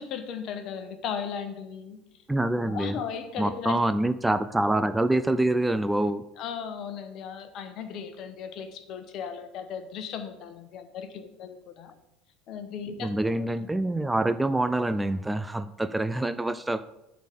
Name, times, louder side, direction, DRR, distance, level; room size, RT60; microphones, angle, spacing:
voice 1, 0.0-2.0 2.7-3.8 6.4-11.9 12.5-13.5, left 7 dB, 55° left, 8 dB, 1.1 m, -36 dB
voice 2, 2.3-3.0 3.4-6.2 13.0-16.8, right 1 dB, 10° right, 12 dB, 0.4 m, -26 dB
8.0 x 4.1 x 6.8 m, 0.89 s
hypercardioid pair, 75°, 0 cm